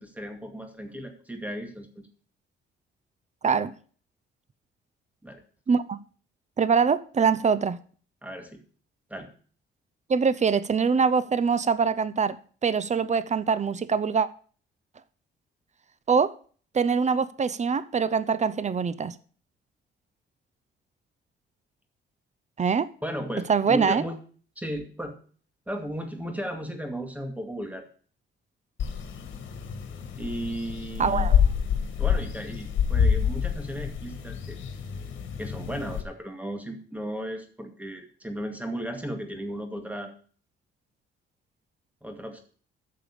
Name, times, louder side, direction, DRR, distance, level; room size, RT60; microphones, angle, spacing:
voice 1, 0.0-2.1 5.2-5.4 8.2-8.6 9.1-9.3 23.0-24.1 24.6-25.1 25.7-27.8 30.1-31.3 32.0-34.6 35.4-40.1 42.0-42.4, equal, 5° right, 2.2 m, -35 dB
voice 2, 3.4-3.7 5.7-6.0 6.6-7.8 10.1-12.4 12.6-14.3 16.1-16.3 16.7-19.2 22.6-22.9 23.5-24.0 31.0-31.4, right 6 dB, 35° right, 0.8 m, -23 dB
sound 1, 28.8-36.0, left 7 dB, 75° left, 1.8 m, -27 dB
9.0 x 6.8 x 6.8 m
cardioid pair, 90°, 20 cm